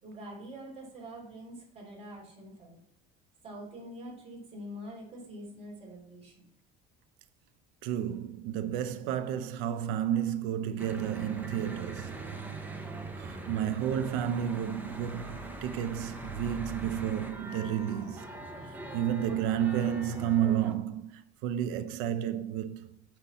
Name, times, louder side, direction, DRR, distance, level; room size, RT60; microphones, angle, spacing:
voice 1, 0.0-2.8 3.4-6.4, equal, 30° right, 2.9 m, -45 dB
voice 2, 7.8-12.3 13.2-18.2 18.9-22.9, right 10 dB, 85° right, 0.6 m, -31 dB
Church bell / Traffic noise roadway noise, 10.8-20.7, right 2 dB, 10° right, 0.7 m, -42 dB
6.7 x 5.8 x 4.1 m
cardioid pair, 155°, 21 cm